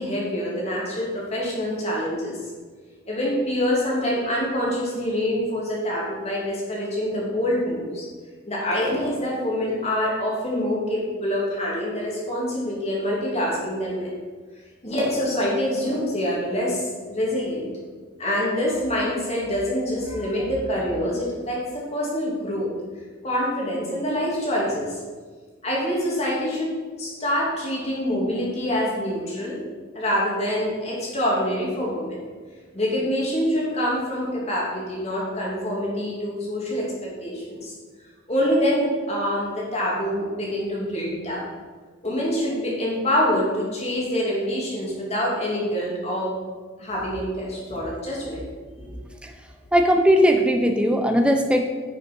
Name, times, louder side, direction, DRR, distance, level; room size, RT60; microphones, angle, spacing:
voice 1, 0.0-2.4 3.1-8.1 8.5-14.2 14.8-17.7 18.2-22.7 23.2-25.0 25.6-29.6 29.9-32.2 32.7-37.7 38.3-41.4 42.0-46.3 46.8-48.4 48.8-49.0, equal, 30° left, -4 dB, 2.9 m, -25 dB
voice 2, 49.7-51.7, equal, 5° right, 4 dB, 0.6 m, -18 dB
10.0 x 6.4 x 5.5 m, 1.5 s
head